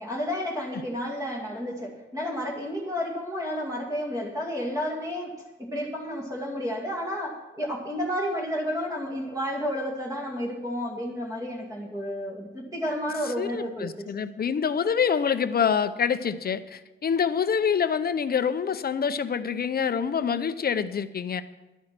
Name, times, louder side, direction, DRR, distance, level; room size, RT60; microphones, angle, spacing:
voice 1, 0.0-5.3 5.6-14.0, equal, 15° right, -1 dB, 2.3 m, -31 dB
voice 2, 13.4-21.4, left 7 dB, 50° left, 11 dB, 0.6 m, -26 dB
11.0 x 10.5 x 6.0 m, 1.0 s
wide cardioid pair, 140°, 21 cm